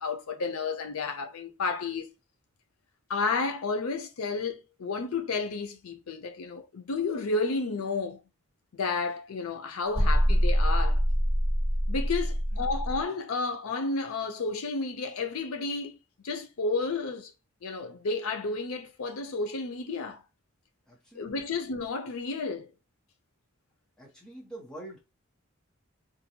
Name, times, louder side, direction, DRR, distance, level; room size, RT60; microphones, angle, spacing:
voice 1, 0.0-2.1 3.1-8.2 8.7-11.0 11.9-16.0 16.2-17.3 17.6-20.2 21.1-22.7, left 3 dB, 80° left, 0.5 m, -31 dB
sound 1, 9.9-13.0, equal, 20° left, 1.8 m, -25 dB
voice 2, 20.9-21.3 24.0-25.0, right 1 dB, 5° left, 0.7 m, -45 dB
2.5 x 2.2 x 2.8 m
head